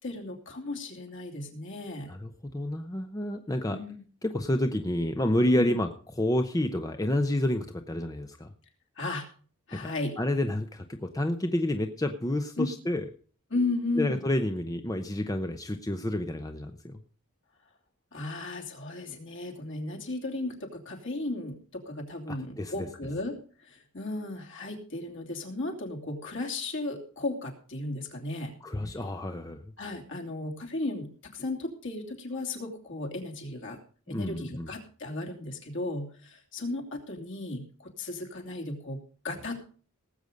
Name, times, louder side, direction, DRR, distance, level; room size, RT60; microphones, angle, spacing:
voice 1, 0.0-2.1 3.7-4.0 5.5-5.7 9.0-9.3 9.7-10.1 12.6-12.7 13.5-14.2 18.1-28.6 29.8-33.8 34.1-39.6, left 2 dB, 55° left, 1 dB, 3.0 m, -35 dB
voice 2, 2.1-3.8 4.2-5.9 6.2-8.5 9.7-13.0 14.0-17.0 22.3-22.9 28.6-29.6 34.1-34.7, left 1 dB, 15° left, 6 dB, 0.7 m, -29 dB
18.5 x 8.1 x 5.1 m, 0.42 s
head